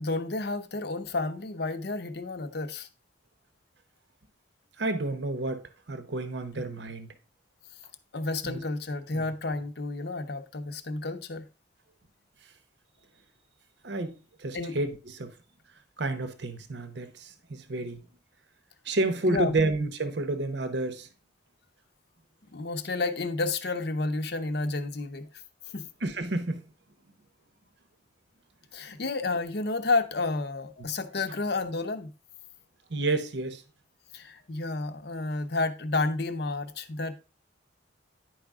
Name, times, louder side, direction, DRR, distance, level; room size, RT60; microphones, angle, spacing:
voice 1, 0.0-2.9 8.1-11.5 14.5-14.8 19.3-19.6 22.5-25.3 25.7-25.9 28.7-32.1 34.1-37.1, left 3 dB, 55° left, 0.7 m, -31 dB
voice 2, 4.8-7.1 8.4-8.6 9.1-9.3 13.8-15.3 16.0-18.0 18.8-21.1 26.0-26.6 30.8-30.9 32.9-33.6, right 2 dB, 60° right, 0.8 m, -30 dB
10.5 x 4.8 x 3.6 m
head